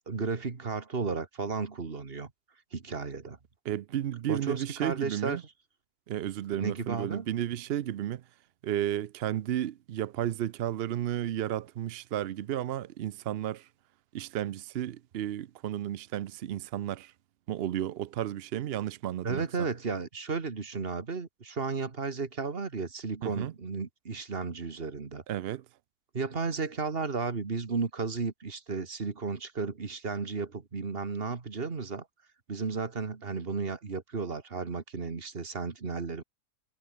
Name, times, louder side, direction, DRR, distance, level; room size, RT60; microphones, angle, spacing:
voice 1, 0.1-2.3 2.7-3.4 4.3-5.4 6.6-7.3 19.2-25.2 26.1-32.1 32.5-36.2, right 4 dB, 35° right, 1.9 m, -34 dB
voice 2, 3.6-5.4 6.1-8.2 8.6-13.7 14.1-17.1 17.5-19.5 23.2-23.5 25.3-25.6, right 11 dB, 80° right, 0.5 m, -33 dB
omnidirectional pair, 1.7 m